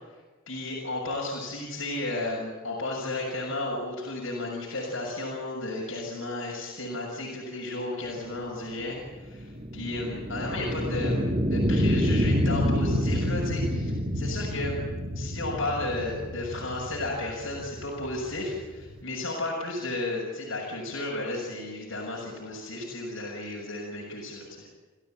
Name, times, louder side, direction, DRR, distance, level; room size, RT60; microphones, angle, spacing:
voice 1, 0.5-14.8 15.1-24.6, left 2 dB, 75° left, -2 dB, 6.6 m, -33 dB
sound 1, 8.3-19.0, equal, 30° right, 2.6 m, -28 dB
30.0 x 16.5 x 9.1 m, 1.2 s
head